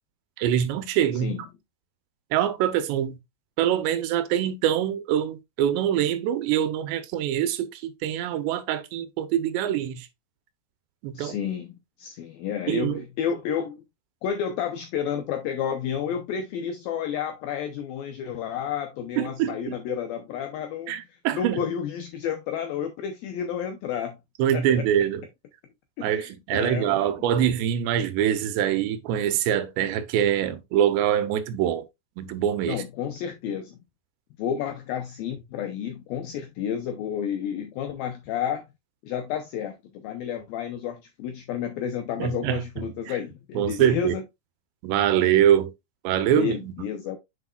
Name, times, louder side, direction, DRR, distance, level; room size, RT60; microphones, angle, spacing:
voice 1, 0.4-1.4 2.3-3.2 3.6-10.1 11.0-11.4 12.7-13.0 19.2-19.8 20.9-21.6 24.4-25.3 26.0-31.8 32.2-32.8 42.2-42.6 43.1-43.2 43.6-44.2 44.8-45.7 46.0-46.8, right 10 dB, 80° right, 2.9 m, -24 dB
voice 2, 11.1-13.8 14.2-24.2 24.5-24.8 26.0-27.1 32.7-33.8 34.4-38.7 39.0-44.2 46.3-47.2, left 8 dB, 85° left, 2.1 m, -31 dB
7.8 x 6.1 x 2.3 m
omnidirectional pair, 5.0 m